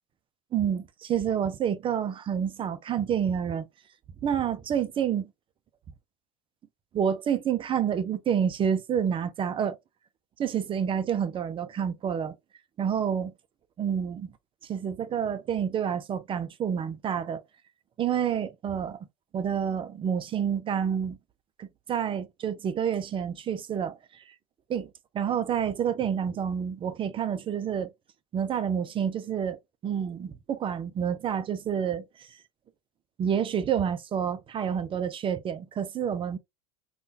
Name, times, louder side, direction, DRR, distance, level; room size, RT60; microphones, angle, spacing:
voice 1, 0.5-3.6 4.2-5.3 6.9-9.8 10.4-12.3 12.8-13.3 13.8-14.3 14.6-17.4 18.0-19.0 19.3-21.2 21.6-24.2 24.7-24.9 25.1-27.9 28.3-29.6 29.8-32.3 33.2-36.4, right 8 dB, 25° right, 0.4 m, -28 dB
3.5 x 2.3 x 2.7 m
supercardioid pair, 105°, 19 cm